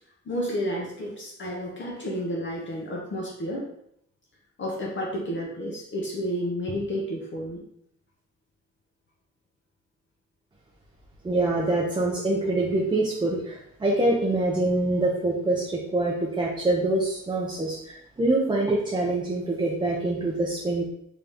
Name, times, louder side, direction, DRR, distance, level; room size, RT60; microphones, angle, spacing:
voice 1, 0.3-3.7 4.6-7.6, equal, 40° left, -3 dB, 0.6 m, -31 dB
voice 2, 11.2-20.8, right 2 dB, 15° right, -4 dB, 0.4 m, -25 dB
3.4 x 2.7 x 3.4 m, 0.74 s
wide cardioid pair, 175°, 30 cm